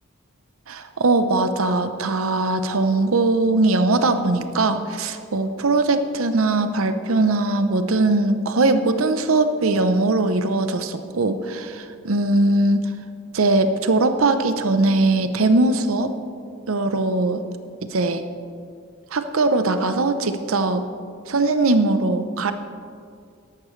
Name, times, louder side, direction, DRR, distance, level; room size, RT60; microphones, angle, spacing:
voice 1, 0.7-12.9 13.3-16.1 16.7-17.4 17.9-18.2 19.1-20.8 21.3-22.5, right 2 dB, 80° right, 9 dB, 0.7 m, -20 dB
13.0 x 11.5 x 3.2 m, 2.3 s
head